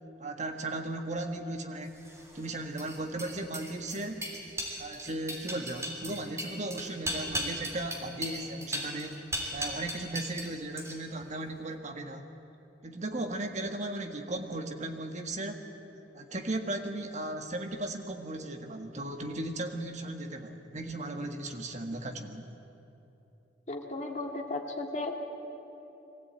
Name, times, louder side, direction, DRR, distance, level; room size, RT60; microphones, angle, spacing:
voice 1, 0.2-2.0 2.3-4.3 4.8-9.2 9.5-12.3 12.8-15.7 16.1-22.5, right 2 dB, 40° right, 5 dB, 1.6 m, -36 dB
sound 1, 2.0-10.5 10.8-11.2, right 1 dB, 15° right, 3.4 m, -37 dB
voice 2, 23.7-25.1, left 2 dB, 40° left, 2 dB, 2.2 m, -35 dB
23.0 x 16.0 x 8.9 m, 2.9 s
head